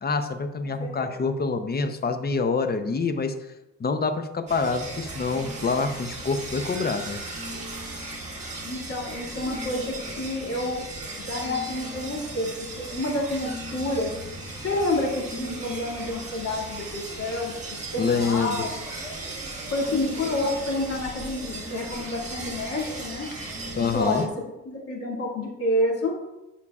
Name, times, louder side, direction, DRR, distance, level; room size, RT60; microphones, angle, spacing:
voice 1, 0.0-3.3 3.8-7.2 18.0-18.7 23.8-24.2, left 4 dB, 30° left, 8 dB, 0.7 m, -26 dB
voice 2, 0.8-1.1 8.6-10.8 11.2-14.1 14.6-17.5 17.9-18.8 19.7-23.3 23.8-24.3 24.6-26.2, left 1 dB, 50° left, -3 dB, 2.2 m, -29 dB
sound 1, 4.5-24.3, right 2 dB, 25° right, 1.6 m, -36 dB
10.5 x 5.6 x 2.4 m, 0.99 s
cardioid pair, 90°, 30 cm